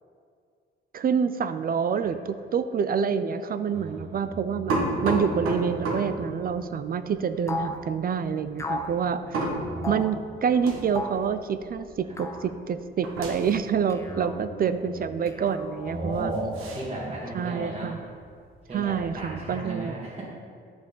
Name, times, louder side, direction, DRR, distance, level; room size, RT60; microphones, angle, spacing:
voice 1, 0.9-9.4 9.9-16.3 17.3-18.0 18.7-19.9, right 7 dB, 45° right, 11 dB, 0.4 m, -27 dB
voice 2, 3.7-4.6 8.9-10.1 12.1-12.2 14.0-15.0 15.8-18.0 18.7-20.2, right 2 dB, 30° right, -6 dB, 1.8 m, -36 dB
sound 1, 4.7-12.1 12.4-15.1 15.4-15.8 16.1-19.2, right 2 dB, 80° right, 1.4 m, -33 dB
sound 2, 7.5-7.8 8.6-9.0 9.8-10.1 10.9-11.3 12.2-12.5 13.9-14.4 15.3-16.0, left 2 dB, 15° left, 0.7 m, -34 dB
9.8 x 5.0 x 3.9 m, 2.2 s
cardioid pair, 95°, 21 cm